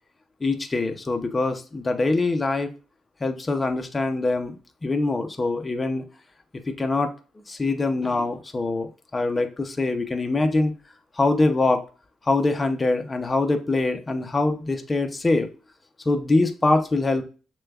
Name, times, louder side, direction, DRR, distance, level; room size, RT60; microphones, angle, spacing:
voice 1, 0.4-2.7 3.2-4.5 4.8-6.0 6.8-7.1 7.5-10.7 11.2-11.8 12.3-15.5 16.1-17.2, left 2 dB, 25° left, 6 dB, 0.6 m, -23 dB
6.4 x 2.3 x 2.3 m, 0.35 s
cardioid pair, 90°, 0 cm